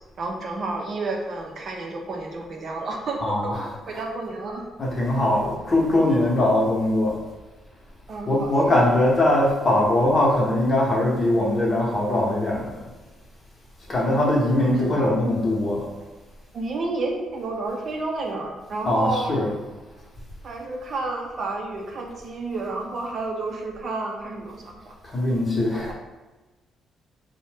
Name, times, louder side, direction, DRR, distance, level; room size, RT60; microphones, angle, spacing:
voice 1, 0.2-3.5 3.9-4.6 8.1-9.0 14.6-15.2 16.5-19.4 20.4-25.0 25.7-25.9, right 3 dB, 55° right, 1 dB, 0.5 m, -31 dB
voice 2, 3.2-4.0 4.8-7.2 8.3-12.8 13.9-15.9 18.8-19.6 25.1-25.9, left 1 dB, 35° left, -3 dB, 0.8 m, -21 dB
2.6 x 2.1 x 3.3 m, 1.2 s
cardioid pair, 90°, 0 cm